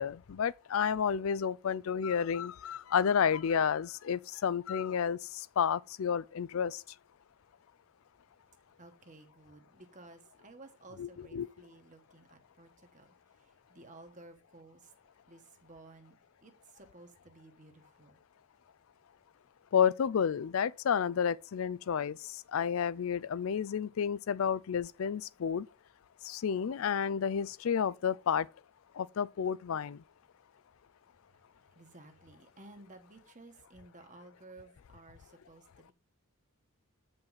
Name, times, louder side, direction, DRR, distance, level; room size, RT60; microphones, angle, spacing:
voice 1, 0.0-6.8 11.0-11.5 19.7-25.7 26.2-28.5 29.0-30.0, left 7 dB, 65° left, 0.4 m, -31 dB
voice 2, 8.8-14.9 15.3-16.2 16.4-18.2 31.7-35.9, right 2 dB, 35° right, 1.4 m, -55 dB
8.6 x 5.3 x 4.0 m
head